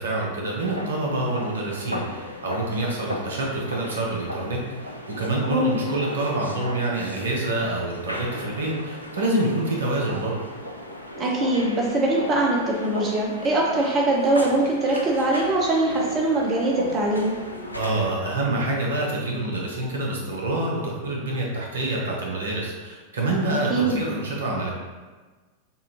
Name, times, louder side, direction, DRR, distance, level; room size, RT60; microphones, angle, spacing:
voice 1, 0.0-10.4 17.7-24.7, right 2 dB, 65° right, -2 dB, 0.9 m, -27 dB
sound 1, 0.6-18.1, left 1 dB, 90° right, 0.4 m, -36 dB
voice 2, 11.1-17.4 23.5-24.0, right 2 dB, 25° right, -2 dB, 0.6 m, -22 dB
5.4 x 2.5 x 2.8 m, 1.3 s
figure-of-eight pair, 90°, 0 cm